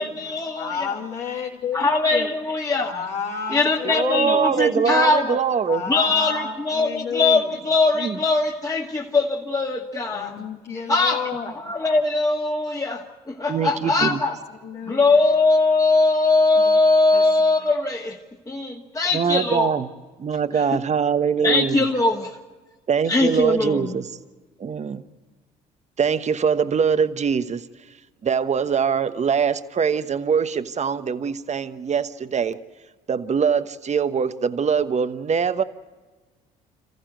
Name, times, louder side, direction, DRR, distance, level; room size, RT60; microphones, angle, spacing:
voice 1, 0.0-1.0 1.7-2.9 3.5-5.4 5.8-10.3 10.9-11.2 11.6-14.4 14.9-18.2 18.5-19.7 20.7-20.8 21.4-22.3 23.1-23.9, left 3 dB, 20° left, 0 dB, 2.1 m, -21 dB
voice 2, 0.5-2.3 2.8-4.7 5.7-7.6 10.1-11.5 13.4-14.2 14.6-15.2 16.6-16.8 17.1-17.5, left 6 dB, 65° left, -5 dB, 2.9 m, -31 dB
voice 3, 3.8-5.8 8.0-8.2 13.5-14.2 19.1-19.9 20.2-21.9 22.9-24.1 24.6-25.0 26.0-27.6 28.2-32.6 33.1-35.6, right 6 dB, 40° right, 11 dB, 1.2 m, -23 dB
27.5 x 14.5 x 9.0 m, 1.3 s
hypercardioid pair, 60°, 19 cm